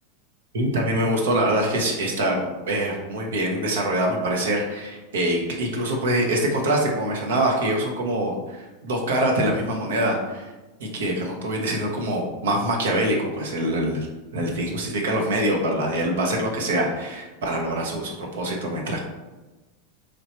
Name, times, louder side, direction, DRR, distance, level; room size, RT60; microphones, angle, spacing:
voice 1, 0.5-10.4 10.8-14.1 14.3-19.0, right 1 dB, 70° right, 0 dB, 0.8 m, -24 dB
3.3 x 2.6 x 4.1 m, 1.1 s
hypercardioid pair, 90°, 0 cm